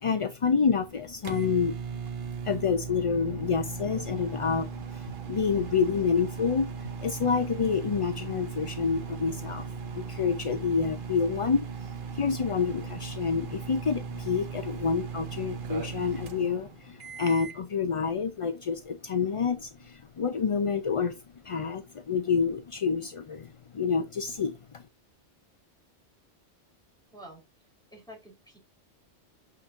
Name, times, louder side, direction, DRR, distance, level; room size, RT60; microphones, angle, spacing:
voice 1, 0.0-2.0 2.4-24.8, left 5 dB, 45° left, 0.4 m, -28 dB
sound 1, 0.7-17.6, right 6 dB, 50° right, 1.0 m, -38 dB
sound 2, 4.8-11.5, left 1 dB, 75° left, 3.1 m, -53 dB
voice 2, 27.9-28.6, equal, 5° left, 3.9 m, -49 dB
8.4 x 5.1 x 2.5 m
omnidirectional pair, 1.2 m